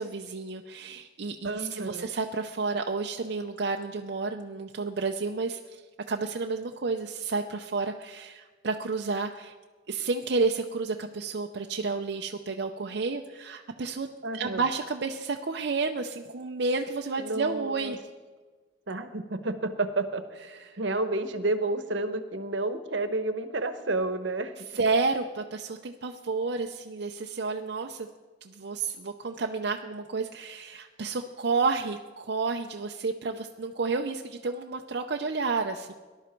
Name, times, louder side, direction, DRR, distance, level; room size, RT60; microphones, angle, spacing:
voice 1, 0.0-5.8 6.1-9.5 9.9-18.0 20.5-20.8 24.7-28.1 28.4-35.9, right 4 dB, 60° right, 3 dB, 0.6 m, -31 dB
voice 2, 1.4-2.1 14.2-14.6 17.2-18.0 18.9-20.2 20.8-24.5, right 2 dB, 75° right, 9 dB, 1.1 m, -30 dB
19.0 x 11.5 x 4.5 m, 1.3 s
head